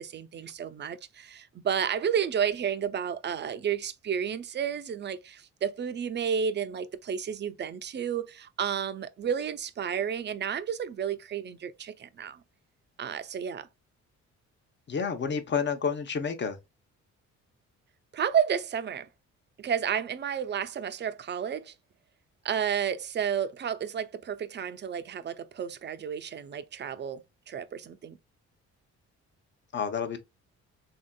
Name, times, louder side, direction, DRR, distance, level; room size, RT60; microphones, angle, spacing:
voice 1, 0.0-12.4 13.0-13.7 18.1-19.1 19.6-21.7 22.4-28.2, right 8 dB, 35° right, 0.5 m, -31 dB
voice 2, 14.9-16.6 29.7-30.2, left 6 dB, 35° left, 0.8 m, -29 dB
3.4 x 2.7 x 2.2 m
cardioid pair, 90°, 30 cm